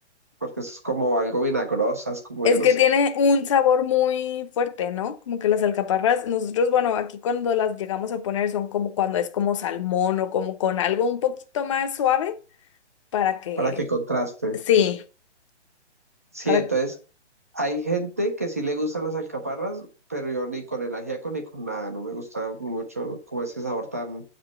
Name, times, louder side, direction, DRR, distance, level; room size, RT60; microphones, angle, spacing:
voice 1, 0.4-2.7 13.6-14.6 16.3-16.9 17.5-24.2, right 2 dB, 15° right, 0.4 m, -28 dB
voice 2, 2.4-12.3 13.1-13.7 14.7-15.0 16.5-16.6, left 8 dB, 25° left, 0.7 m, -23 dB
7.2 x 5.1 x 6.7 m
hypercardioid pair, 160°, 35 cm